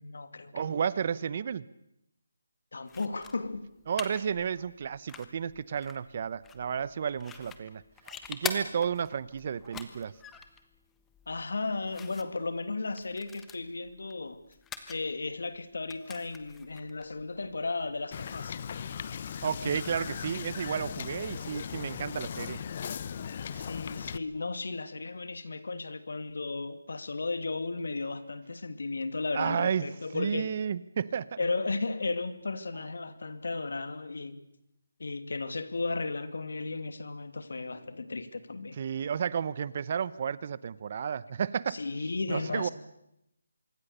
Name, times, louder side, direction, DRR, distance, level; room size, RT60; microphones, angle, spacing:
voice 1, 0.0-0.8 2.7-3.7 11.3-14.4 14.9-18.5 23.5-30.6 31.4-34.4 35.0-38.8 41.7-42.7, left 3 dB, 75° left, 11 dB, 2.5 m, -35 dB
voice 2, 0.5-1.6 3.9-10.1 19.4-22.6 23.5-23.7 29.3-29.9 30.1-31.4 38.8-41.8 42.3-42.7, right 7 dB, 40° right, 19 dB, 0.8 m, -32 dB
sound 1, 2.9-18.0, left 7 dB, 10° left, 1.3 m, -46 dB
Wind / Boat Water vehicle, 18.1-24.2, left 7 dB, 35° left, 0.9 m, -38 dB
25.5 x 22.5 x 6.8 m, 0.81 s
hypercardioid pair, 165°, 0 cm